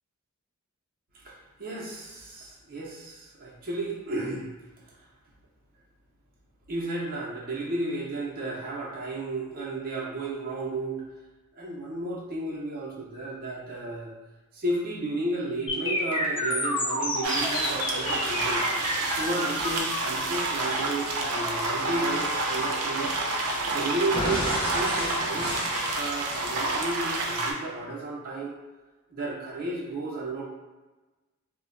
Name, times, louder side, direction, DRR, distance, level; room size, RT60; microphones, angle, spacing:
voice 1, 1.6-4.5 6.7-11.0 11.6-14.1 14.5-18.6 19.2-23.1 23.7-25.5 25.9-28.5 29.1-30.4, right 2 dB, 40° right, -5 dB, 0.6 m, -33 dB
sound 1, 15.7-23.6 24.1-26.7, left 1 dB, 25° left, 0.4 m, -32 dB
sound 2, 17.2-27.5, right 2 dB, 85° right, 0.5 m, -29 dB
2.2 x 2.1 x 3.7 m, 1.2 s
head